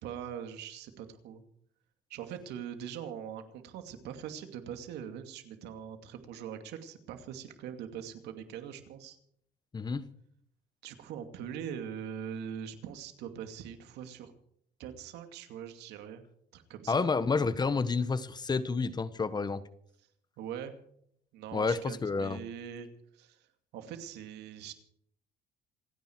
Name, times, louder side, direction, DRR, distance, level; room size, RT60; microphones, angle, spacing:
voice 1, 0.0-1.4 2.1-9.2 10.8-14.3 14.8-16.2 16.5-17.1 20.4-20.7 21.3-22.9 23.1-23.5 23.7-24.7, right 8 dB, 85° right, 7 dB, 2.5 m, -42 dB
voice 2, 9.7-10.1 16.9-19.6 21.5-22.4, left 4 dB, 25° left, 15 dB, 1.2 m, -29 dB
27.5 x 10.0 x 4.7 m, 0.68 s
cardioid pair, 110°, 17 cm